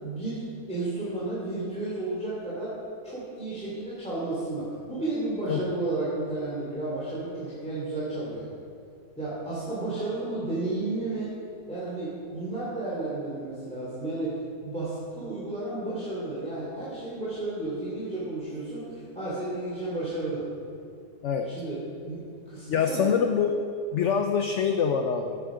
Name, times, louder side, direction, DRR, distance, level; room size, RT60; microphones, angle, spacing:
voice 1, 0.0-2.7 3.0-8.5 9.2-11.3 11.7-14.4 14.6-20.4 21.5-23.1, right 2 dB, 5° left, -9 dB, 2.7 m, -32 dB
voice 2, 22.7-23.6 23.9-25.4, left 6 dB, 60° left, 5 dB, 0.8 m, -25 dB
14.0 x 9.2 x 5.0 m, 2.4 s
omnidirectional pair, 1.7 m